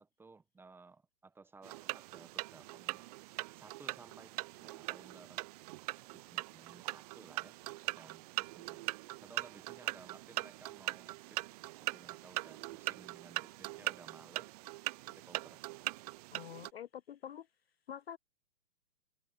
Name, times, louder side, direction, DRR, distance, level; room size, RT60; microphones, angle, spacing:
voice 1, 0.0-3.0 3.5-5.5 6.1-11.5 11.8-14.5 15.1-15.6, right 4 dB, 5° right, 1.1 m, -58 dB
sound 1, 1.6-16.7, right 20 dB, 25° right, 0.9 m, -41 dB
voice 2, 16.3-17.5 17.9-18.2, left 9 dB, 40° left, 0.6 m, -46 dB
figure-of-eight pair, 125°, 47 cm